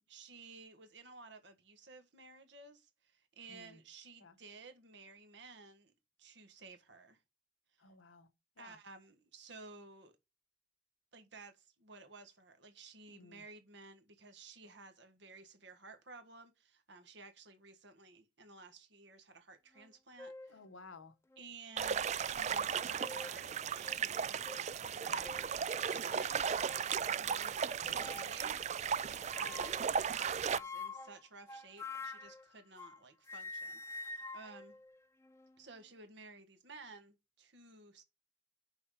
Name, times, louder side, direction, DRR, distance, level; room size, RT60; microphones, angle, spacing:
voice 1, 0.0-5.9 6.2-7.2 8.6-10.1 11.1-20.6 21.4-24.7 25.0-26.7 27.1-34.8 35.6-38.0, right 3 dB, 60° right, 1.5 m, -55 dB
voice 2, 3.5-3.8 4.2-4.3 7.8-8.3 8.6-8.7 13.1-13.4 20.5-21.1, left 3 dB, 85° left, 1.1 m, -55 dB
sound 1, 19.8-19.9 20.2-20.6 21.3-21.4 22.7-23.4 23.8-24.0 24.4-24.6 25.2-25.5 26.2-26.9 27.9-28.4 29.3-29.9 30.5-33.0 33.3-35.6, left 3 dB, 15° left, 0.5 m, -47 dB
sound 2, 21.8-30.6, right 7 dB, 35° right, 0.3 m, -36 dB
6.1 x 5.7 x 4.8 m
head